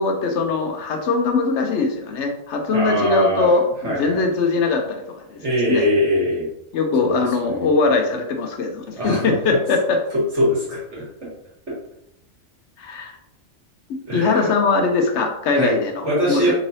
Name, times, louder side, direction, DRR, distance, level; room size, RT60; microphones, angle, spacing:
voice 1, 0.0-5.4 5.7-5.9 6.7-10.0 12.8-13.1 14.1-16.5, left 4 dB, 75° left, 3 dB, 0.9 m, -21 dB
voice 2, 2.7-3.5 3.8-4.2 5.4-6.5 7.0-7.7 9.0-9.3 10.3-11.3 14.1-14.5 15.5-15.7 16.0-16.5, equal, 70° right, -6 dB, 1.9 m, -22 dB
3.7 x 3.0 x 2.7 m, 0.80 s
omnidirectional pair, 1.3 m